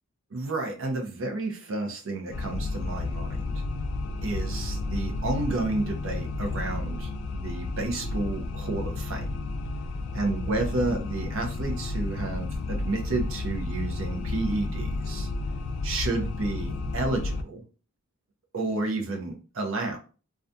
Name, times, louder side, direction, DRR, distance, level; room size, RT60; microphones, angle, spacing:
voice 1, 0.3-3.3 4.2-9.3 10.1-15.3 15.8-17.6 18.5-20.0, right 2 dB, 65° right, 2 dB, 0.6 m, -31 dB
sound 1, 2.3-17.4, left 3 dB, 85° left, 0.3 m, -32 dB
2.4 x 2.2 x 2.6 m, 0.37 s
head